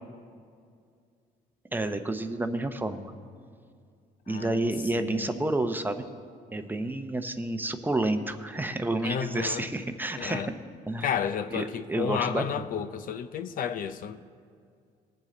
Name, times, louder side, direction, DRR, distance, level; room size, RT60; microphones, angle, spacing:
voice 1, 1.7-3.1 4.3-6.0 6.5-10.4 10.9-11.1 11.5-12.7, right 2 dB, 10° right, 0.7 m, -30 dB
voice 2, 4.3-4.6 4.9-5.4 9.0-9.7 10.2-10.5 11.0-14.2, left 8 dB, 55° left, 0.5 m, -32 dB
21.0 x 7.5 x 3.9 m
cardioid pair, 110°, 17 cm